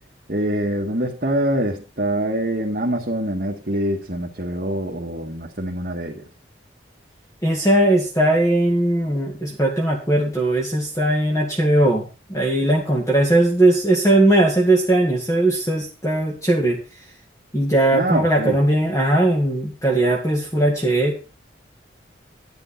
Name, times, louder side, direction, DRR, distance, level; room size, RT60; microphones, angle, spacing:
voice 1, 0.3-6.2 17.9-18.6, right 1 dB, 50° right, -2 dB, 1.7 m, -24 dB
voice 2, 7.4-16.8 17.5-21.2, right 1 dB, 15° left, 0 dB, 1.8 m, -19 dB
10.5 x 10.5 x 4.2 m, 0.32 s
head